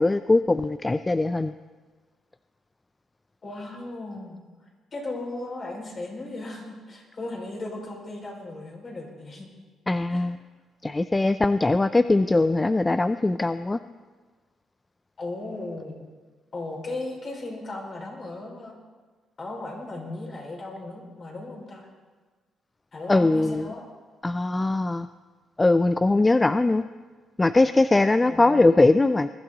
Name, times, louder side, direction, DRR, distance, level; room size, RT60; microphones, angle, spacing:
voice 1, 0.0-1.5 9.9-10.4 10.8-13.8 23.1-23.6 24.2-25.1 25.6-26.8 27.4-29.3, left 2 dB, 20° left, 12 dB, 0.4 m, -21 dB
voice 2, 3.4-4.4 4.9-9.5 10.1-10.3 15.2-16.0 16.5-18.7 19.4-21.9 22.9-23.8 28.2-28.7, left 2 dB, 40° left, -2 dB, 5.0 m, -36 dB
21.0 x 12.0 x 3.9 m, 1.4 s
cardioid pair, 90°, 0 cm